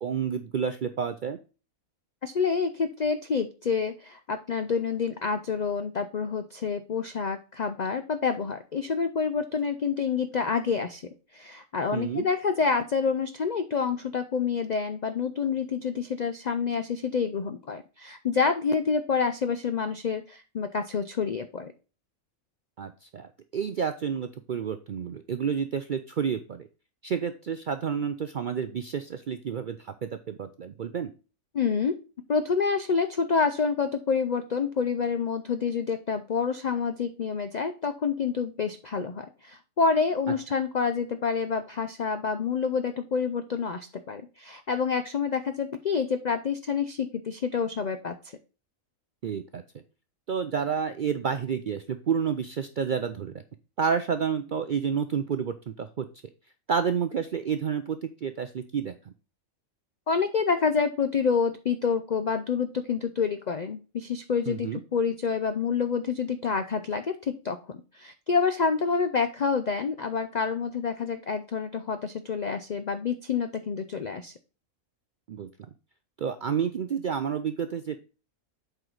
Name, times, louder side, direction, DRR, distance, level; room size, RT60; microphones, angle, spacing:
voice 1, 0.0-1.4 11.9-12.3 22.8-26.7 27.0-31.1 49.2-49.6 50.3-53.3 53.8-56.1 56.7-59.1 64.5-64.8 75.3-75.5 76.2-78.0, right 7 dB, 65° right, 9 dB, 0.4 m, -30 dB
voice 2, 2.2-11.0 11.3-21.7 31.5-31.9 32.3-48.2 60.1-74.3, left 5 dB, 70° left, 9 dB, 0.4 m, -28 dB
7.9 x 4.6 x 3.8 m, 0.34 s
omnidirectional pair, 1.4 m